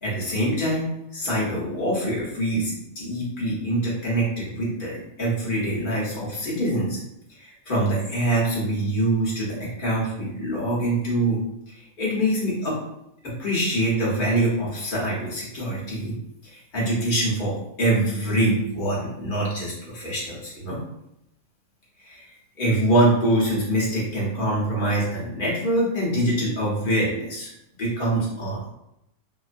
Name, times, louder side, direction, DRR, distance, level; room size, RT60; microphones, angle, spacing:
voice 1, 0.0-7.0 7.4-11.4 11.7-12.8 13.2-16.1 16.4-20.8 22.0-22.2 22.6-27.5 27.8-28.7, right 1 dB, 40° left, -6 dB, 0.9 m, -24 dB
2.9 x 2.2 x 2.5 m, 0.81 s
omnidirectional pair, 1.7 m